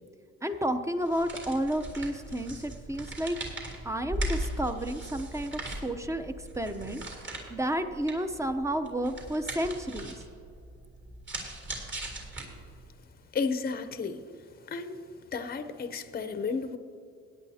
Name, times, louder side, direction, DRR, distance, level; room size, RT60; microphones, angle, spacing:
voice 1, 0.4-3.5 3.8-7.0 7.5-10.2, right 1 dB, 10° right, 8 dB, 0.7 m, -31 dB
sound 1, 1.0-12.9, right 1 dB, 40° right, 3.0 m, -39 dB
voice 2, 13.3-14.2 14.7-15.0 15.3-16.8, left 5 dB, 30° left, 9 dB, 0.7 m, -32 dB
17.0 x 9.6 x 2.8 m, 2.4 s
cardioid pair, 90°, 30 cm